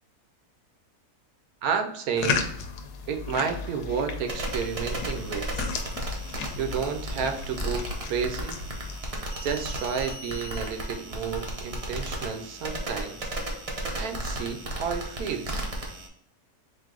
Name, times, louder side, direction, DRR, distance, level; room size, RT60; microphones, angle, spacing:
voice 1, 1.6-2.5 3.1-5.7 6.6-8.6 9.4-13.3 14.0-15.6, right 6 dB, 75° right, 6 dB, 1.0 m, -31 dB
sound 1, 2.2-9.0, left 5 dB, 85° left, 1.1 m, -34 dB
sound 2, 4.3-16.1, right 1 dB, 45° right, 0.4 m, -34 dB
3.9 x 2.6 x 3.6 m, 0.71 s
omnidirectional pair, 1.6 m